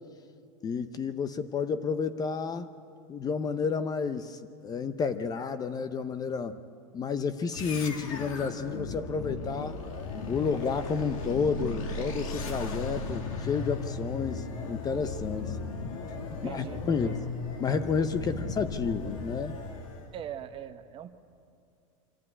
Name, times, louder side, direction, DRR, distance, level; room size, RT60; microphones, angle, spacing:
voice 1, 0.6-2.7 3.1-6.6 6.9-9.8 10.3-15.6 16.4-17.2 17.6-19.6, left 5 dB, 20° left, 12 dB, 0.6 m, -31 dB
sound 1, 7.5-20.2, left 3 dB, 75° left, 2.4 m, -36 dB
voice 2, 16.3-17.1 18.2-18.4 20.1-21.1, right 10 dB, 30° right, 9 dB, 0.9 m, -41 dB
25.5 x 13.5 x 9.8 m, 2.5 s
supercardioid pair, 135°, 17 cm